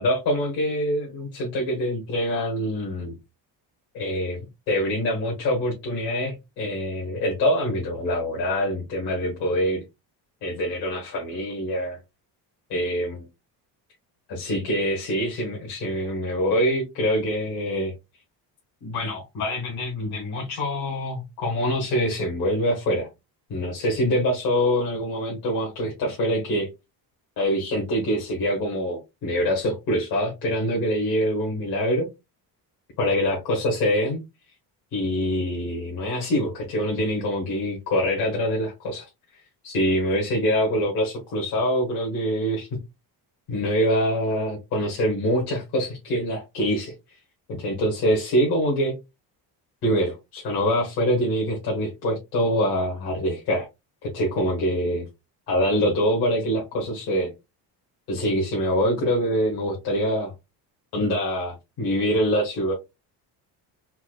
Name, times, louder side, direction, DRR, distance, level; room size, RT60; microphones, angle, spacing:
voice 1, 0.0-3.2 3.9-9.8 10.4-12.0 12.7-13.2 14.3-17.9 18.8-23.1 23.5-26.7 27.4-32.1 33.0-34.2 34.9-42.8 43.5-46.9 47.6-48.9 49.8-53.7 54.0-55.1 55.5-57.3 58.1-60.3 60.9-62.7, equal, 65° left, 1.5 m, -25 dB
4.4 x 2.2 x 2.4 m
cardioid pair, 145°, 41 cm